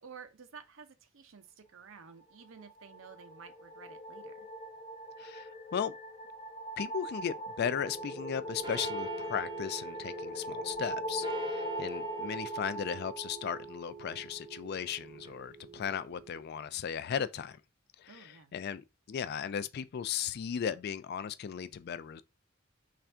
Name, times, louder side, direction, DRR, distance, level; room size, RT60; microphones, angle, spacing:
voice 1, 0.0-4.3 18.1-18.5, right 6 dB, 70° right, 0.6 m, -52 dB
sound 1, 2.5-14.0, equal, 30° left, 0.7 m, -41 dB
voice 2, 5.2-5.9 6.8-17.6 18.0-22.2, left 8 dB, 50° left, 0.3 m, -36 dB
sound 2, 7.6-16.4, right 4 dB, 20° right, 0.6 m, -45 dB
3.4 x 2.5 x 4.3 m
head